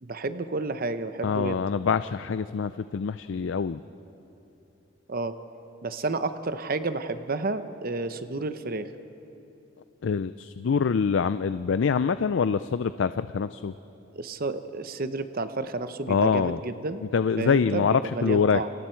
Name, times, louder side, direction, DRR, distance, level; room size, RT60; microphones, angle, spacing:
voice 1, 0.0-1.6 5.1-5.4 5.8-8.9 14.1-17.0 17.4-18.7, right 3 dB, 45° right, 10 dB, 0.8 m, -31 dB
voice 2, 1.2-3.8 10.0-13.7 16.1-16.6 17.1-18.6, left 6 dB, 65° left, 13 dB, 0.4 m, -25 dB
29.0 x 26.0 x 4.5 m, 3.0 s
head